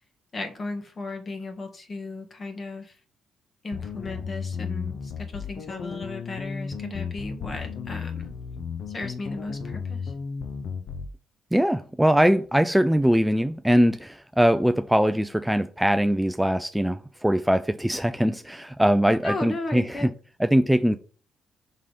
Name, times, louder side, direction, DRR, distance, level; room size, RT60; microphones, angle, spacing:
voice 1, 0.3-2.9 3.6-8.3 8.9-10.1 19.2-20.1, left 2 dB, 35° left, 1.7 m, -35 dB
sound 1, 3.7-11.1, left 6 dB, 65° left, 0.6 m, -34 dB
voice 2, 11.5-20.1 20.4-21.0, equal, 5° right, 0.4 m, -22 dB
5.4 x 3.7 x 5.0 m
cardioid pair, 90°, 0 cm